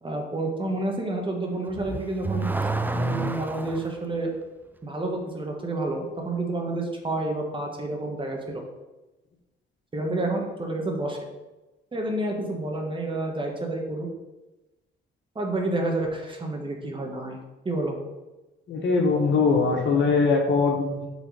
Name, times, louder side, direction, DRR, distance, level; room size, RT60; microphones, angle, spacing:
voice 1, 0.0-2.5 2.9-4.3 4.8-8.6 9.9-11.2 11.9-14.1 15.3-17.4 17.6-17.9, right 2 dB, 25° right, 1 dB, 1.4 m, -29 dB
Car / Accelerating revving vroom, 1.7-3.9, right 2 dB, 10° right, 0.4 m, -28 dB
voice 2, 18.7-21.1, left 4 dB, 65° left, 1 dB, 1.4 m, -21 dB
6.1 x 3.5 x 5.6 m, 1.1 s
cardioid pair, 90°, 20 cm